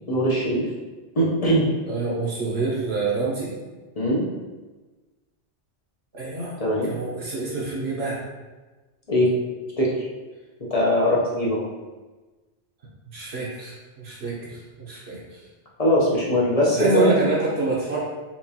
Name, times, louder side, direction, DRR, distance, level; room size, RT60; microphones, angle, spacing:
voice 1, 0.1-0.6 1.1-1.7 4.0-4.2 6.6-6.9 9.1-9.3 9.8-10.1 10.7-11.6 15.8-17.2, equal, 40° left, -5 dB, 0.7 m, -21 dB
voice 2, 1.8-3.5 6.1-6.6 6.9-8.2 13.1-15.4 16.7-18.0, right 3 dB, 65° right, -6 dB, 1.1 m, -27 dB
4.4 x 2.5 x 2.8 m, 1.2 s
omnidirectional pair, 1.2 m